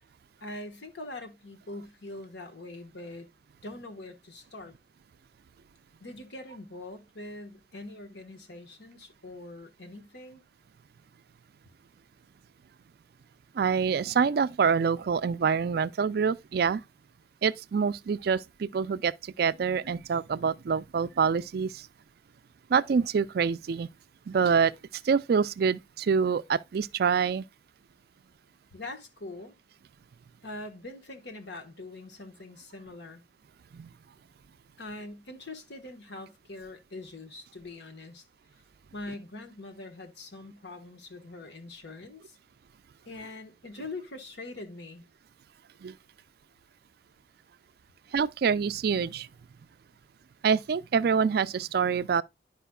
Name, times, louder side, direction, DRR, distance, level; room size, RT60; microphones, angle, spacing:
voice 1, 0.4-3.3 3.6-4.7 6.0-10.4 28.7-29.6 30.4-33.2 34.8-38.2 38.9-42.4 43.0-45.0, left 2 dB, 70° left, 1.2 m, -43 dB
voice 2, 13.6-16.8 17.4-21.8 22.7-23.9 24.3-24.7 25.0-27.4 33.7-33.9 45.8-45.9 48.1-49.3 50.4-52.2, right 6 dB, 55° right, 0.3 m, -26 dB
11.0 x 5.0 x 2.2 m
head